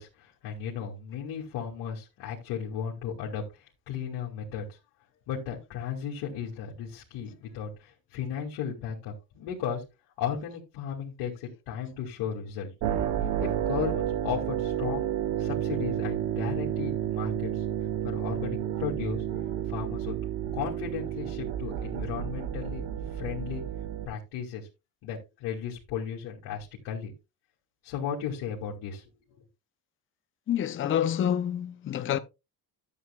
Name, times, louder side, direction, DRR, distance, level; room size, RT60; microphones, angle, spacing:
voice 1, 0.0-4.8 5.3-9.8 10.2-12.7 13.4-15.1 15.4-17.6 18.0-19.2 19.7-20.2 20.5-22.9 23.1-23.6 24.1-24.7 25.0-27.1 27.8-29.4, left 8 dB, 75° left, 2.6 m, -35 dB
sound 1, 12.8-24.1, right 10 dB, 55° right, 1.1 m, -31 dB
voice 2, 30.5-32.2, left 10 dB, 30° left, 0.7 m, -27 dB
12.5 x 8.3 x 2.4 m
cardioid pair, 155°, 40 cm